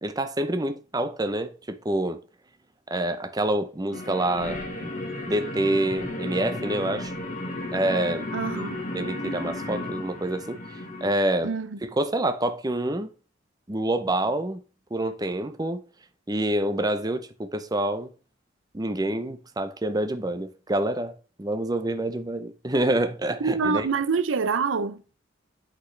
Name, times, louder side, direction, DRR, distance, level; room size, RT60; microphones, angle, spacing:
voice 1, 0.0-2.2 2.9-4.9 5.3-7.1 7.7-8.3 8.6-8.7 8.9-11.5 11.8-13.1 13.7-14.6 14.9-15.8 16.3-18.1 18.7-21.1 21.4-23.9, right 1 dB, 20° right, 0.7 m, -27 dB
sound 1, 3.9-11.1, left 2 dB, 45° left, 1.6 m, -34 dB
voice 2, 8.3-8.8 11.4-11.8 23.4-25.2, right 5 dB, 90° right, 0.6 m, -26 dB
8.3 x 6.1 x 3.3 m
head